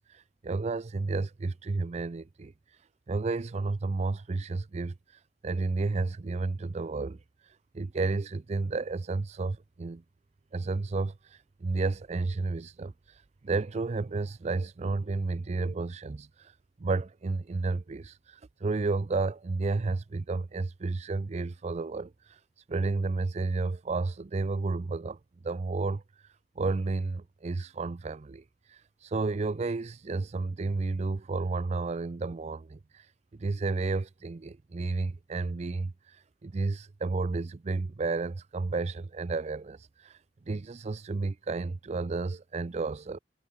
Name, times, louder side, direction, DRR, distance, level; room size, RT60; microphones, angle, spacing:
voice 1, 0.0-2.5 3.1-4.9 5.4-7.2 7.7-10.0 10.5-16.5 16.8-22.4 22.7-25.2 25.4-26.0 26.6-33.1 33.3-40.2 40.5-43.2, right 3 dB, 40° right, 0.4 m, -32 dB
head